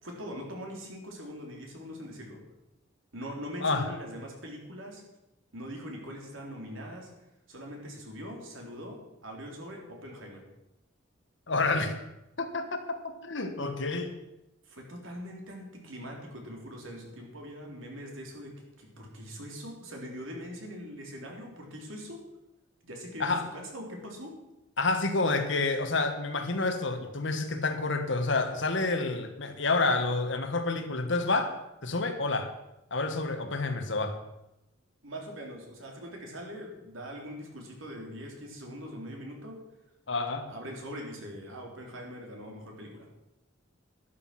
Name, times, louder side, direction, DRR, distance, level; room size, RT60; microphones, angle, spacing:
voice 1, 0.0-2.4 3.1-5.0 5.5-7.1 7.5-10.5 14.6-22.2 22.8-24.4 35.0-39.6 40.5-43.1, equal, 80° right, 1 dB, 3.7 m, -42 dB
voice 2, 3.6-3.9 11.5-12.0 12.4-14.2 23.2-23.5 24.8-31.6 31.8-32.5 32.9-34.2 40.1-40.5, left 3 dB, 65° left, 7 dB, 1.6 m, -29 dB
12.0 x 11.5 x 6.0 m, 0.92 s
head